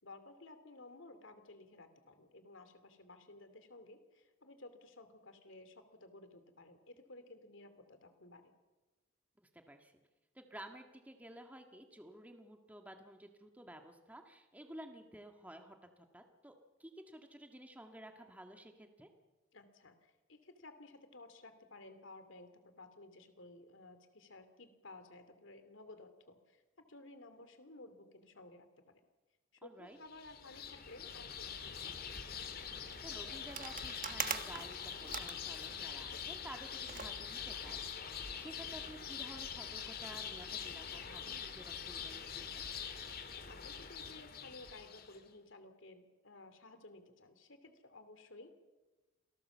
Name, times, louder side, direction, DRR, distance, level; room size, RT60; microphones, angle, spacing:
voice 1, 0.0-8.5 19.5-28.9 29.5-32.1 43.3-48.5, left 2 dB, 70° left, 9 dB, 3.0 m, -56 dB
voice 2, 9.5-9.9 10.3-16.5 16.8-19.1 29.6-30.0 32.8-42.6, right 1 dB, 10° right, 4 dB, 1.7 m, -53 dB
sound 1, 30.1-45.2, left 7 dB, 50° left, 2.1 m, -44 dB
sound 2, 33.5-36.2 36.8-38.5, right 7 dB, 40° right, 1.5 m, -43 dB
28.0 x 18.5 x 7.4 m, 1.2 s
head